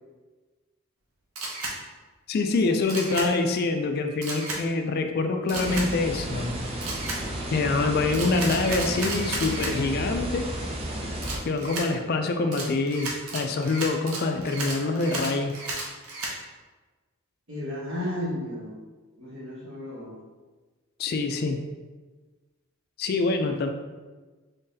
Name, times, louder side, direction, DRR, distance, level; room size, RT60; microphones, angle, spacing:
Camera, 1.4-1.8 2.9-3.3 4.2-4.6 5.5-5.9 6.8-7.2 8.1-9.7 11.2-11.9 12.5-16.3, right 2 dB, 85° right, 0.8 m, -33 dB
voice 1, 2.3-6.5 7.5-10.5 11.5-15.5 21.0-21.6 23.0-23.7, left 3 dB, 45° left, 6 dB, 0.3 m, -25 dB
sound 1, 5.5-11.4, right 1 dB, 25° right, 0.5 m, -33 dB
voice 2, 17.5-18.7 19.2-20.1, left 1 dB, 65° right, -6 dB, 1.3 m, -34 dB
3.9 x 3.6 x 2.7 m, 1.3 s
head